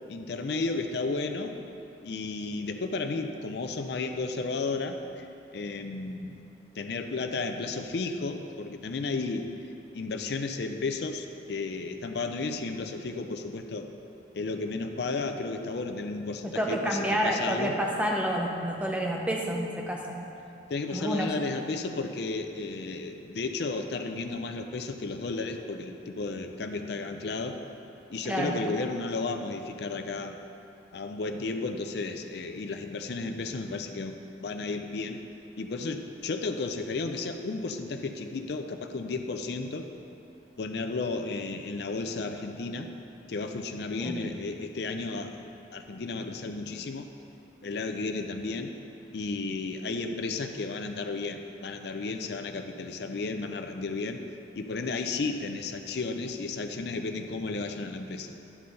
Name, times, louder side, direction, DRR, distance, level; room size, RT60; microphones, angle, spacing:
voice 1, 0.1-1.6 2.0-5.3 5.5-6.4 6.8-9.5 9.9-13.9 14.3-17.8 20.7-27.6 28.1-30.4 30.9-34.2 34.4-35.2 35.6-39.9 40.6-42.9 43.3-47.1 47.6-48.7 49.1-54.2 54.6-58.3, left 3 dB, 60° left, 5 dB, 0.5 m, -33 dB
voice 2, 16.4-20.0 20.9-21.3 28.3-28.5 44.0-44.2, equal, 5° right, -1 dB, 0.7 m, -29 dB
11.0 x 5.6 x 3.9 m, 2.8 s
head